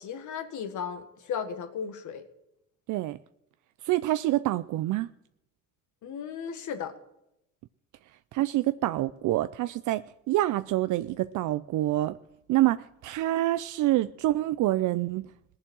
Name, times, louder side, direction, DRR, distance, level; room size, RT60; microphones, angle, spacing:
voice 1, 0.0-2.2 6.0-6.9, left 7 dB, 75° left, 8 dB, 1.7 m, -35 dB
voice 2, 3.8-5.1 8.3-12.2 12.5-15.3, right 15 dB, 80° right, 13 dB, 0.5 m, -26 dB
18.0 x 7.3 x 6.3 m, 0.83 s
cardioid pair, 90°, 30 cm